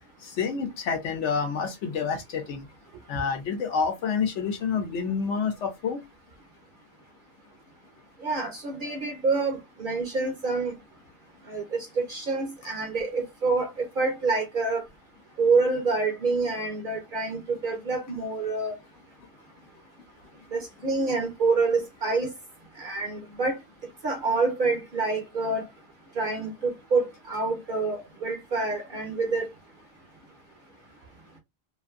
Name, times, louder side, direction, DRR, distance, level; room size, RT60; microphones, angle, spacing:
voice 1, 0.2-2.6 3.1-6.0, left 6 dB, 70° left, 0.9 m, -28 dB
voice 2, 8.2-10.7 11.5-13.7 14.0-14.8 15.4-18.7 20.5-22.3 22.8-23.6 24.0-25.6 26.2-29.5, right 3 dB, 55° right, 0.7 m, -27 dB
2.5 x 2.5 x 2.3 m
omnidirectional pair, 1.3 m